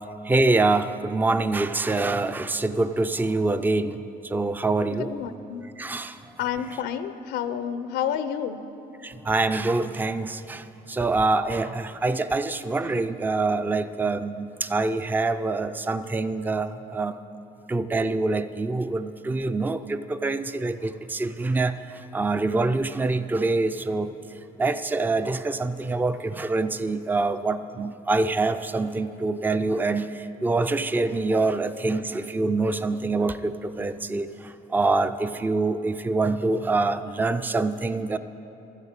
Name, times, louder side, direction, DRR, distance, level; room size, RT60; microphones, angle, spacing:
voice 1, 0.2-5.1 5.8-6.2 9.0-17.2 17.7-38.2, right 3 dB, 10° right, 11 dB, 0.4 m, -25 dB
voice 2, 5.0-5.6 6.4-8.6, left 8 dB, 85° left, 11 dB, 0.6 m, -29 dB
13.5 x 8.1 x 8.9 m, 2.9 s
cardioid pair, 110°, 17 cm